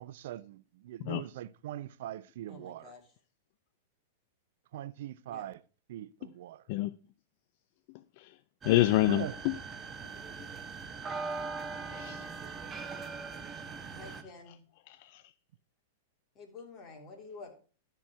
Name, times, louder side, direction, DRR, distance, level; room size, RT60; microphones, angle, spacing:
voice 1, 0.0-2.9 4.7-5.6 5.9-6.6 9.1-9.4, right 13 dB, 65° right, 0.4 m, -41 dB
voice 2, 2.5-3.0 5.3-5.5 13.9-14.6 16.3-17.6, left 4 dB, 30° left, 3.3 m, -49 dB
voice 3, 8.6-9.5 11.9-12.3 14.9-15.2, left 17 dB, 55° left, 0.4 m, -28 dB
sound 1, 8.6-14.2, right 4 dB, 20° right, 1.2 m, -41 dB
12.0 x 4.6 x 5.7 m
hypercardioid pair, 110°, 0 cm